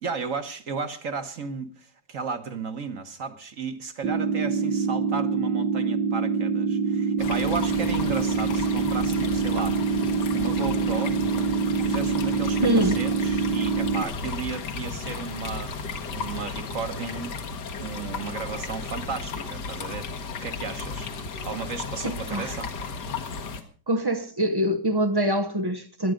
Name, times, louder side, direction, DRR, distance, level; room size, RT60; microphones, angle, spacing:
voice 1, 0.0-9.8 10.3-11.2 11.8-15.7 16.1-17.4 17.8-20.1 20.4-21.1 21.4-22.7, right 5 dB, 50° right, 1.5 m, -34 dB
sound 1, 4.0-14.0, right 5 dB, 90° right, 1.7 m, -25 dB
sound 2, 7.2-23.6, left 4 dB, 75° left, 2.0 m, -34 dB
voice 2, 12.6-13.0 22.0-22.6 23.1-23.2 23.9-26.1, equal, 30° right, 0.4 m, -24 dB
18.0 x 11.5 x 5.1 m
omnidirectional pair, 1.9 m